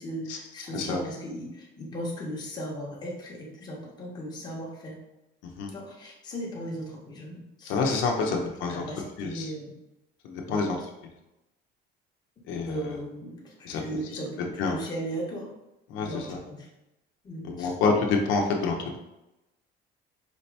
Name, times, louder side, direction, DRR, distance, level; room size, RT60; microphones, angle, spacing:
voice 1, 0.0-5.0 5.7-7.7 8.2-8.4 8.7-9.7 10.5-10.7 12.6-15.5 16.0-16.7 17.2-17.7, right 1 dB, 20° left, -3 dB, 1.0 m, -37 dB
voice 2, 7.7-8.8 9.2-9.5 10.2-10.8 12.5-12.9 13.6-13.8 14.4-14.8 15.9-16.4 17.4-19.0, left 4 dB, 80° left, 1 dB, 0.8 m, -27 dB
4.9 x 2.8 x 3.3 m, 0.93 s
cardioid pair, 175°, 20 cm